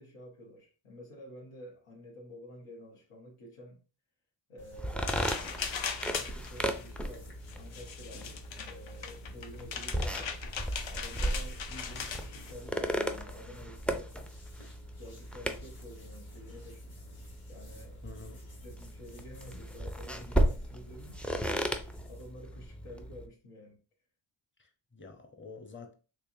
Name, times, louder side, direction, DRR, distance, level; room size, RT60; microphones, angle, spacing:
voice 1, 0.0-3.8 4.5-10.3 10.9-14.3 15.0-16.9 17.5-21.2 21.6-23.8, equal, 85° left, 1.3 m, -50 dB
sound 1, 4.6-22.4, left 1 dB, 45° left, 1.4 m, -54 dB
sound 2, 4.7-23.3, right 1 dB, 5° left, 0.3 m, -36 dB
sound 3, 5.0-12.5, left 7 dB, 65° left, 0.7 m, -39 dB
voice 2, 18.0-18.4 24.6-25.9, left 4 dB, 25° left, 0.8 m, -48 dB
3.3 x 3.2 x 2.7 m
cardioid pair, 70°, 49 cm